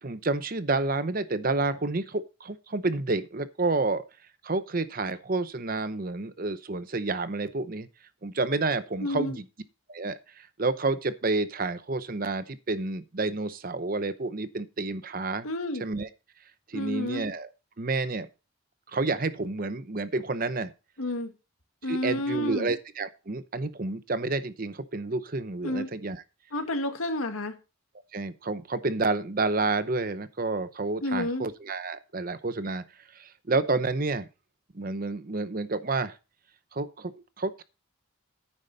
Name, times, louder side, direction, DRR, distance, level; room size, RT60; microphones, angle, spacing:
voice 1, 0.0-4.0 4.4-7.9 8.2-9.4 9.9-15.5 15.8-16.1 16.7-17.5 17.8-18.3 18.9-20.7 21.8-26.2 28.1-32.8 33.1-34.3 34.7-36.2 36.7-37.1 37.4-37.6, right 3 dB, 40° right, 0.8 m, -29 dB
voice 2, 9.0-9.4 15.4-15.8 16.7-17.2 21.0-21.3 21.8-22.7 25.6-25.9 26.5-27.6 31.0-31.4, left 1 dB, 85° left, 1.8 m, -30 dB
9.9 x 8.8 x 4.0 m
head